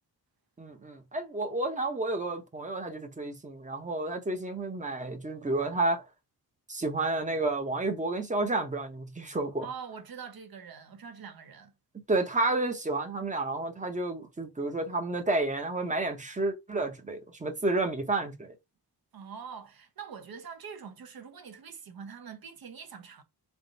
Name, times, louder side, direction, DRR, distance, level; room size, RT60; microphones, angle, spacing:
voice 1, 0.6-6.0 6.7-9.7 12.1-18.6, right 2 dB, 20° right, 0.7 m, -31 dB
voice 2, 9.6-11.7 19.1-23.2, right 6 dB, 60° right, 0.8 m, -44 dB
3.5 x 2.4 x 3.8 m
wide cardioid pair, 170°, 41 cm